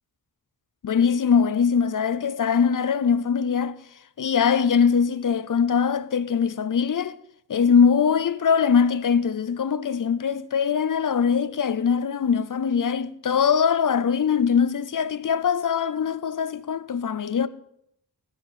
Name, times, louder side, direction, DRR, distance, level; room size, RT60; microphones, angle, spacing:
voice 1, 0.8-3.8 4.2-7.2 7.5-17.5, left 6 dB, 55° left, 0.6 m, -22 dB
18.0 x 10.5 x 4.3 m
wide cardioid pair, 140°, 40 cm